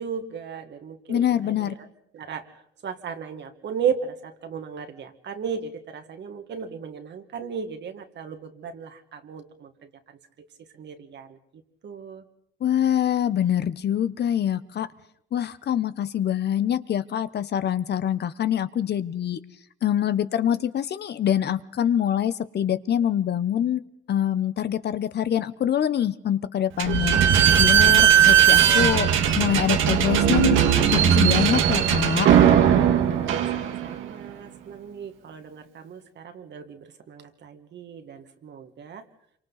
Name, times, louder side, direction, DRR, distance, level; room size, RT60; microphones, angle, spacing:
voice 1, 0.0-1.7 2.1-2.5 2.8-10.5 10.7-11.4 11.8-12.2 33.2-39.0, right 7 dB, 60° right, 7 dB, 2.0 m, -35 dB
voice 2, 1.1-1.8 12.6-14.9 15.3-19.4 19.8-23.8 24.1-29.1 29.4-30.6 30.9-32.3, left 10 dB, 55° left, 14 dB, 0.9 m, -25 dB
Slam / Squeak, 26.8-34.1, right 9 dB, 85° right, 1.6 m, -18 dB
27.0 x 24.5 x 4.1 m, 0.72 s
cardioid pair, 90°, 20 cm